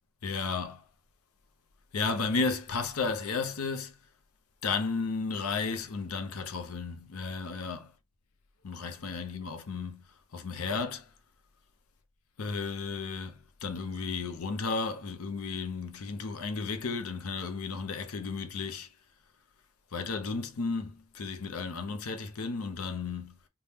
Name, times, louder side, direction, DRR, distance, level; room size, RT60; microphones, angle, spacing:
voice 1, 0.2-0.8 1.9-3.9 4.6-7.9 8.6-10.0 10.3-11.0 12.4-13.3 13.6-18.9 19.9-23.3, left 4 dB, 90° left, 0.6 m, -33 dB
3.4 x 2.2 x 2.8 m
head